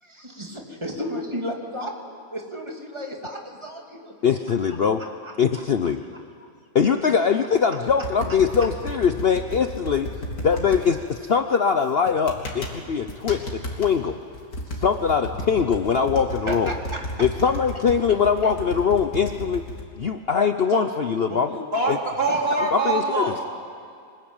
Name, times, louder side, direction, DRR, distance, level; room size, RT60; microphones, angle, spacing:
voice 1, 0.0-4.1 5.2-5.3 16.4-17.2 20.7-20.9 21.3-21.7 22.3-22.4, equal, 20° right, 0 dB, 2.9 m, -33 dB
voice 2, 4.2-5.0 5.4-6.0 6.7-10.1 10.4-14.2 14.8-16.7 17.2-19.6 20.0-21.6 21.9-22.0 22.6-23.3, left 6 dB, 50° left, 7 dB, 0.9 m, -22 dB
sound 1, 7.9-10.8 12.1-12.8 13.1-13.9 14.3-19.8, equal, 85° left, 3.3 m, -33 dB
voice 3, 21.7-23.5, right 3 dB, 40° right, -1 dB, 3.7 m, -24 dB
25.5 x 20.5 x 8.9 m, 2.3 s
omnidirectional pair, 1.5 m